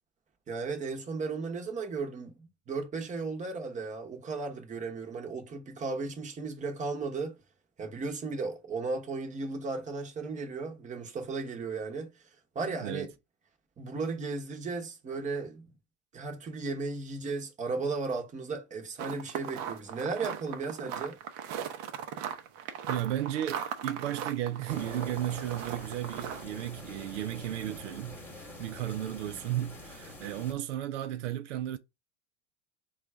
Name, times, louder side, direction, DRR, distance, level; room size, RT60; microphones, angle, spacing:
voice 1, 0.5-7.4 7.8-12.1 12.5-13.1 13.8-15.7 16.1-21.2, right 4 dB, 20° right, 1.0 m, -35 dB
sound 1, 19.0-26.4, right 8 dB, 50° right, 0.7 m, -38 dB
voice 2, 22.9-31.8, right 12 dB, 85° right, 0.6 m, -34 dB
sound 2, 24.7-30.5, left 1 dB, 5° left, 1.2 m, -46 dB
3.8 x 2.4 x 4.5 m
supercardioid pair, 115°, 35 cm